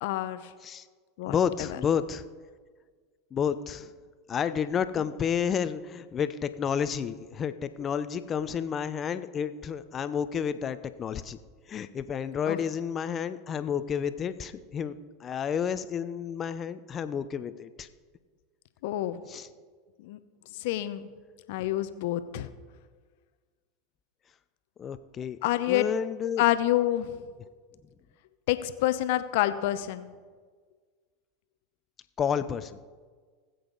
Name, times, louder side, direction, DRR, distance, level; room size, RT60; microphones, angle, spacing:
voice 1, 0.0-0.5 1.2-1.3 1.6-1.8 12.5-12.6 18.8-19.2 20.0-20.2 20.5-21.0 21.5-22.5 25.4-25.9 26.4-27.2 28.5-30.1, left 14 dB, 70° left, 11 dB, 0.8 m, -27 dB
voice 2, 1.2-2.2 3.3-3.9 4.3-11.4 11.7-14.9 15.2-17.9 19.3-19.5 24.8-25.4 25.7-26.4 32.2-32.8, left 7 dB, 35° left, 12 dB, 0.7 m, -30 dB
19.5 x 8.0 x 4.0 m, 1.6 s
hypercardioid pair, 95°, 0 cm